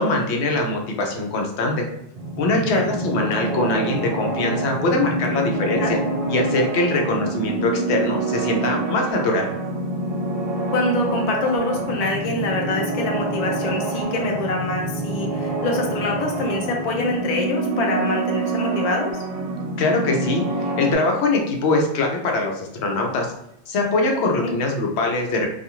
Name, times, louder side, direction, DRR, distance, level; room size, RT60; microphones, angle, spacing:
voice 1, 0.0-1.8 2.4-6.0 6.3-9.5 19.8-20.4 20.8-23.3 23.7-25.5, left 2 dB, 75° left, 1 dB, 0.9 m, -22 dB
sound 1, 2.2-20.9, right 2 dB, 70° right, 0.8 m, -26 dB
voice 2, 10.7-19.1 24.1-24.6, left 2 dB, 50° left, 1 dB, 0.5 m, -25 dB
2.4 x 2.3 x 2.9 m, 0.80 s
omnidirectional pair, 1.2 m